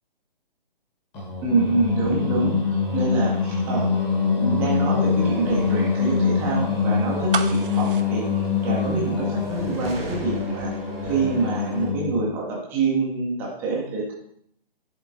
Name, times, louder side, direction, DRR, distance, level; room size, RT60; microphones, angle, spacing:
Singing, 1.1-12.3, left 5 dB, 15° left, 1.1 m, -24 dB
voice 1, 1.4-3.9 4.3-10.7 11.0-14.1, right 3 dB, 5° right, -3 dB, 0.5 m, -26 dB
sound 1, 5.0-11.9, right 1 dB, 90° right, 1.5 m, -41 dB
sound 2, 7.3-9.3 9.6-9.7, right 6 dB, 60° right, 0.5 m, -31 dB
10.5 x 3.6 x 2.5 m, 0.68 s
figure-of-eight pair, 140°, 29 cm